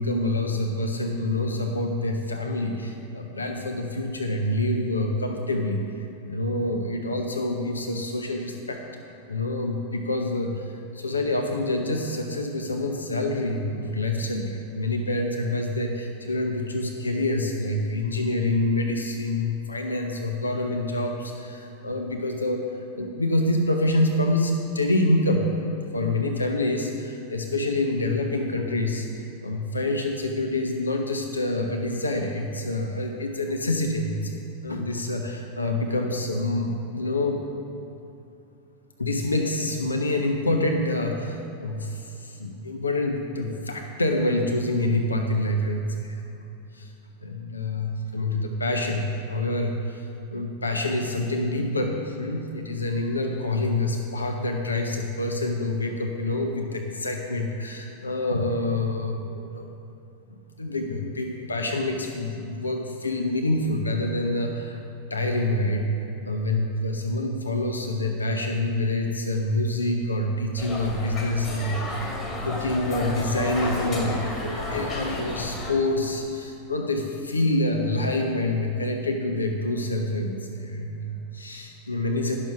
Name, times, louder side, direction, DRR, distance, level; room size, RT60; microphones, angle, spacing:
voice 1, 0.0-8.8 9.3-37.4 39.0-46.2 46.7-46.9 47.2-59.7 60.3-64.8 65.1-72.1 72.4-82.4, left 1 dB, 80° left, 2 dB, 0.7 m, -27 dB
sound 1, 70.6-75.7, left 2 dB, 25° left, 2.0 m, -31 dB
10.5 x 6.5 x 6.0 m, 2.7 s
figure-of-eight pair, 90°, 0 cm